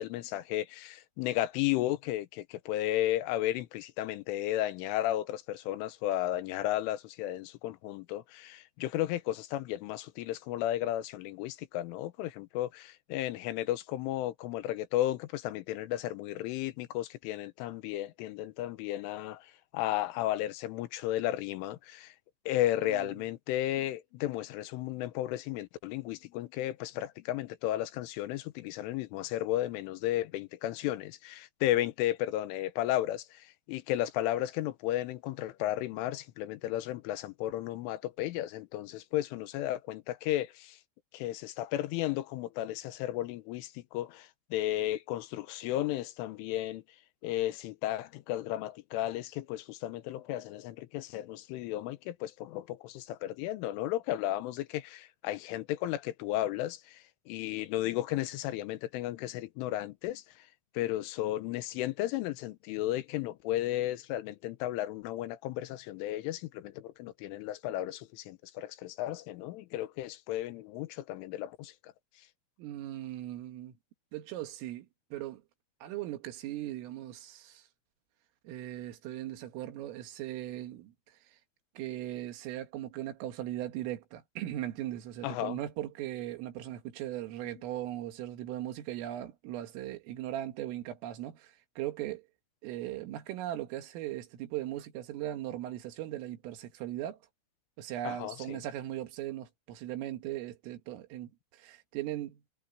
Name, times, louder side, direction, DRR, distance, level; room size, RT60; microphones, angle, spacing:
voice 1, 0.0-22.1 22.5-40.8 41.1-46.8 47.2-60.2 60.8-71.7 85.2-85.6 98.1-98.6, left 14 dB, 85° left, 3.5 m, -34 dB
voice 2, 72.6-73.7 74.1-75.4 75.8-77.6 78.4-80.9 81.8-92.2 92.6-97.2 97.8-102.5, right 13 dB, 85° right, 4.4 m, -38 dB
omnidirectional pair, 5.7 m